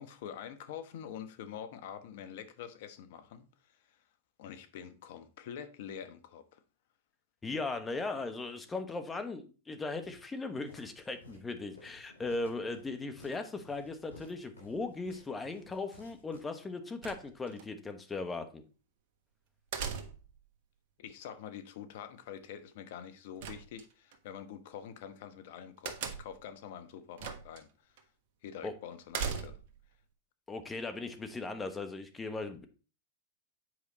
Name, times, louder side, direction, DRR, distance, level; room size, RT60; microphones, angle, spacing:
voice 1, 0.0-4.0 4.4-6.6 21.0-27.9 28.4-29.6, left 9 dB, 60° left, 1.0 m, -46 dB
voice 2, 7.4-18.6 28.6-28.7 30.5-32.7, left 3 dB, 15° left, 1.2 m, -38 dB
Walk footsteps, 10.0-17.0, left 3 dB, 85° left, 3.7 m, -57 dB
sound 1, 17.0-17.6 19.7-20.4 23.4-24.2 25.8-26.5 27.2-27.6 28.0-28.1 29.1-29.8, right 6 dB, 60° right, 1.2 m, -38 dB
8.0 x 5.0 x 4.0 m
hypercardioid pair, 100°, 0 cm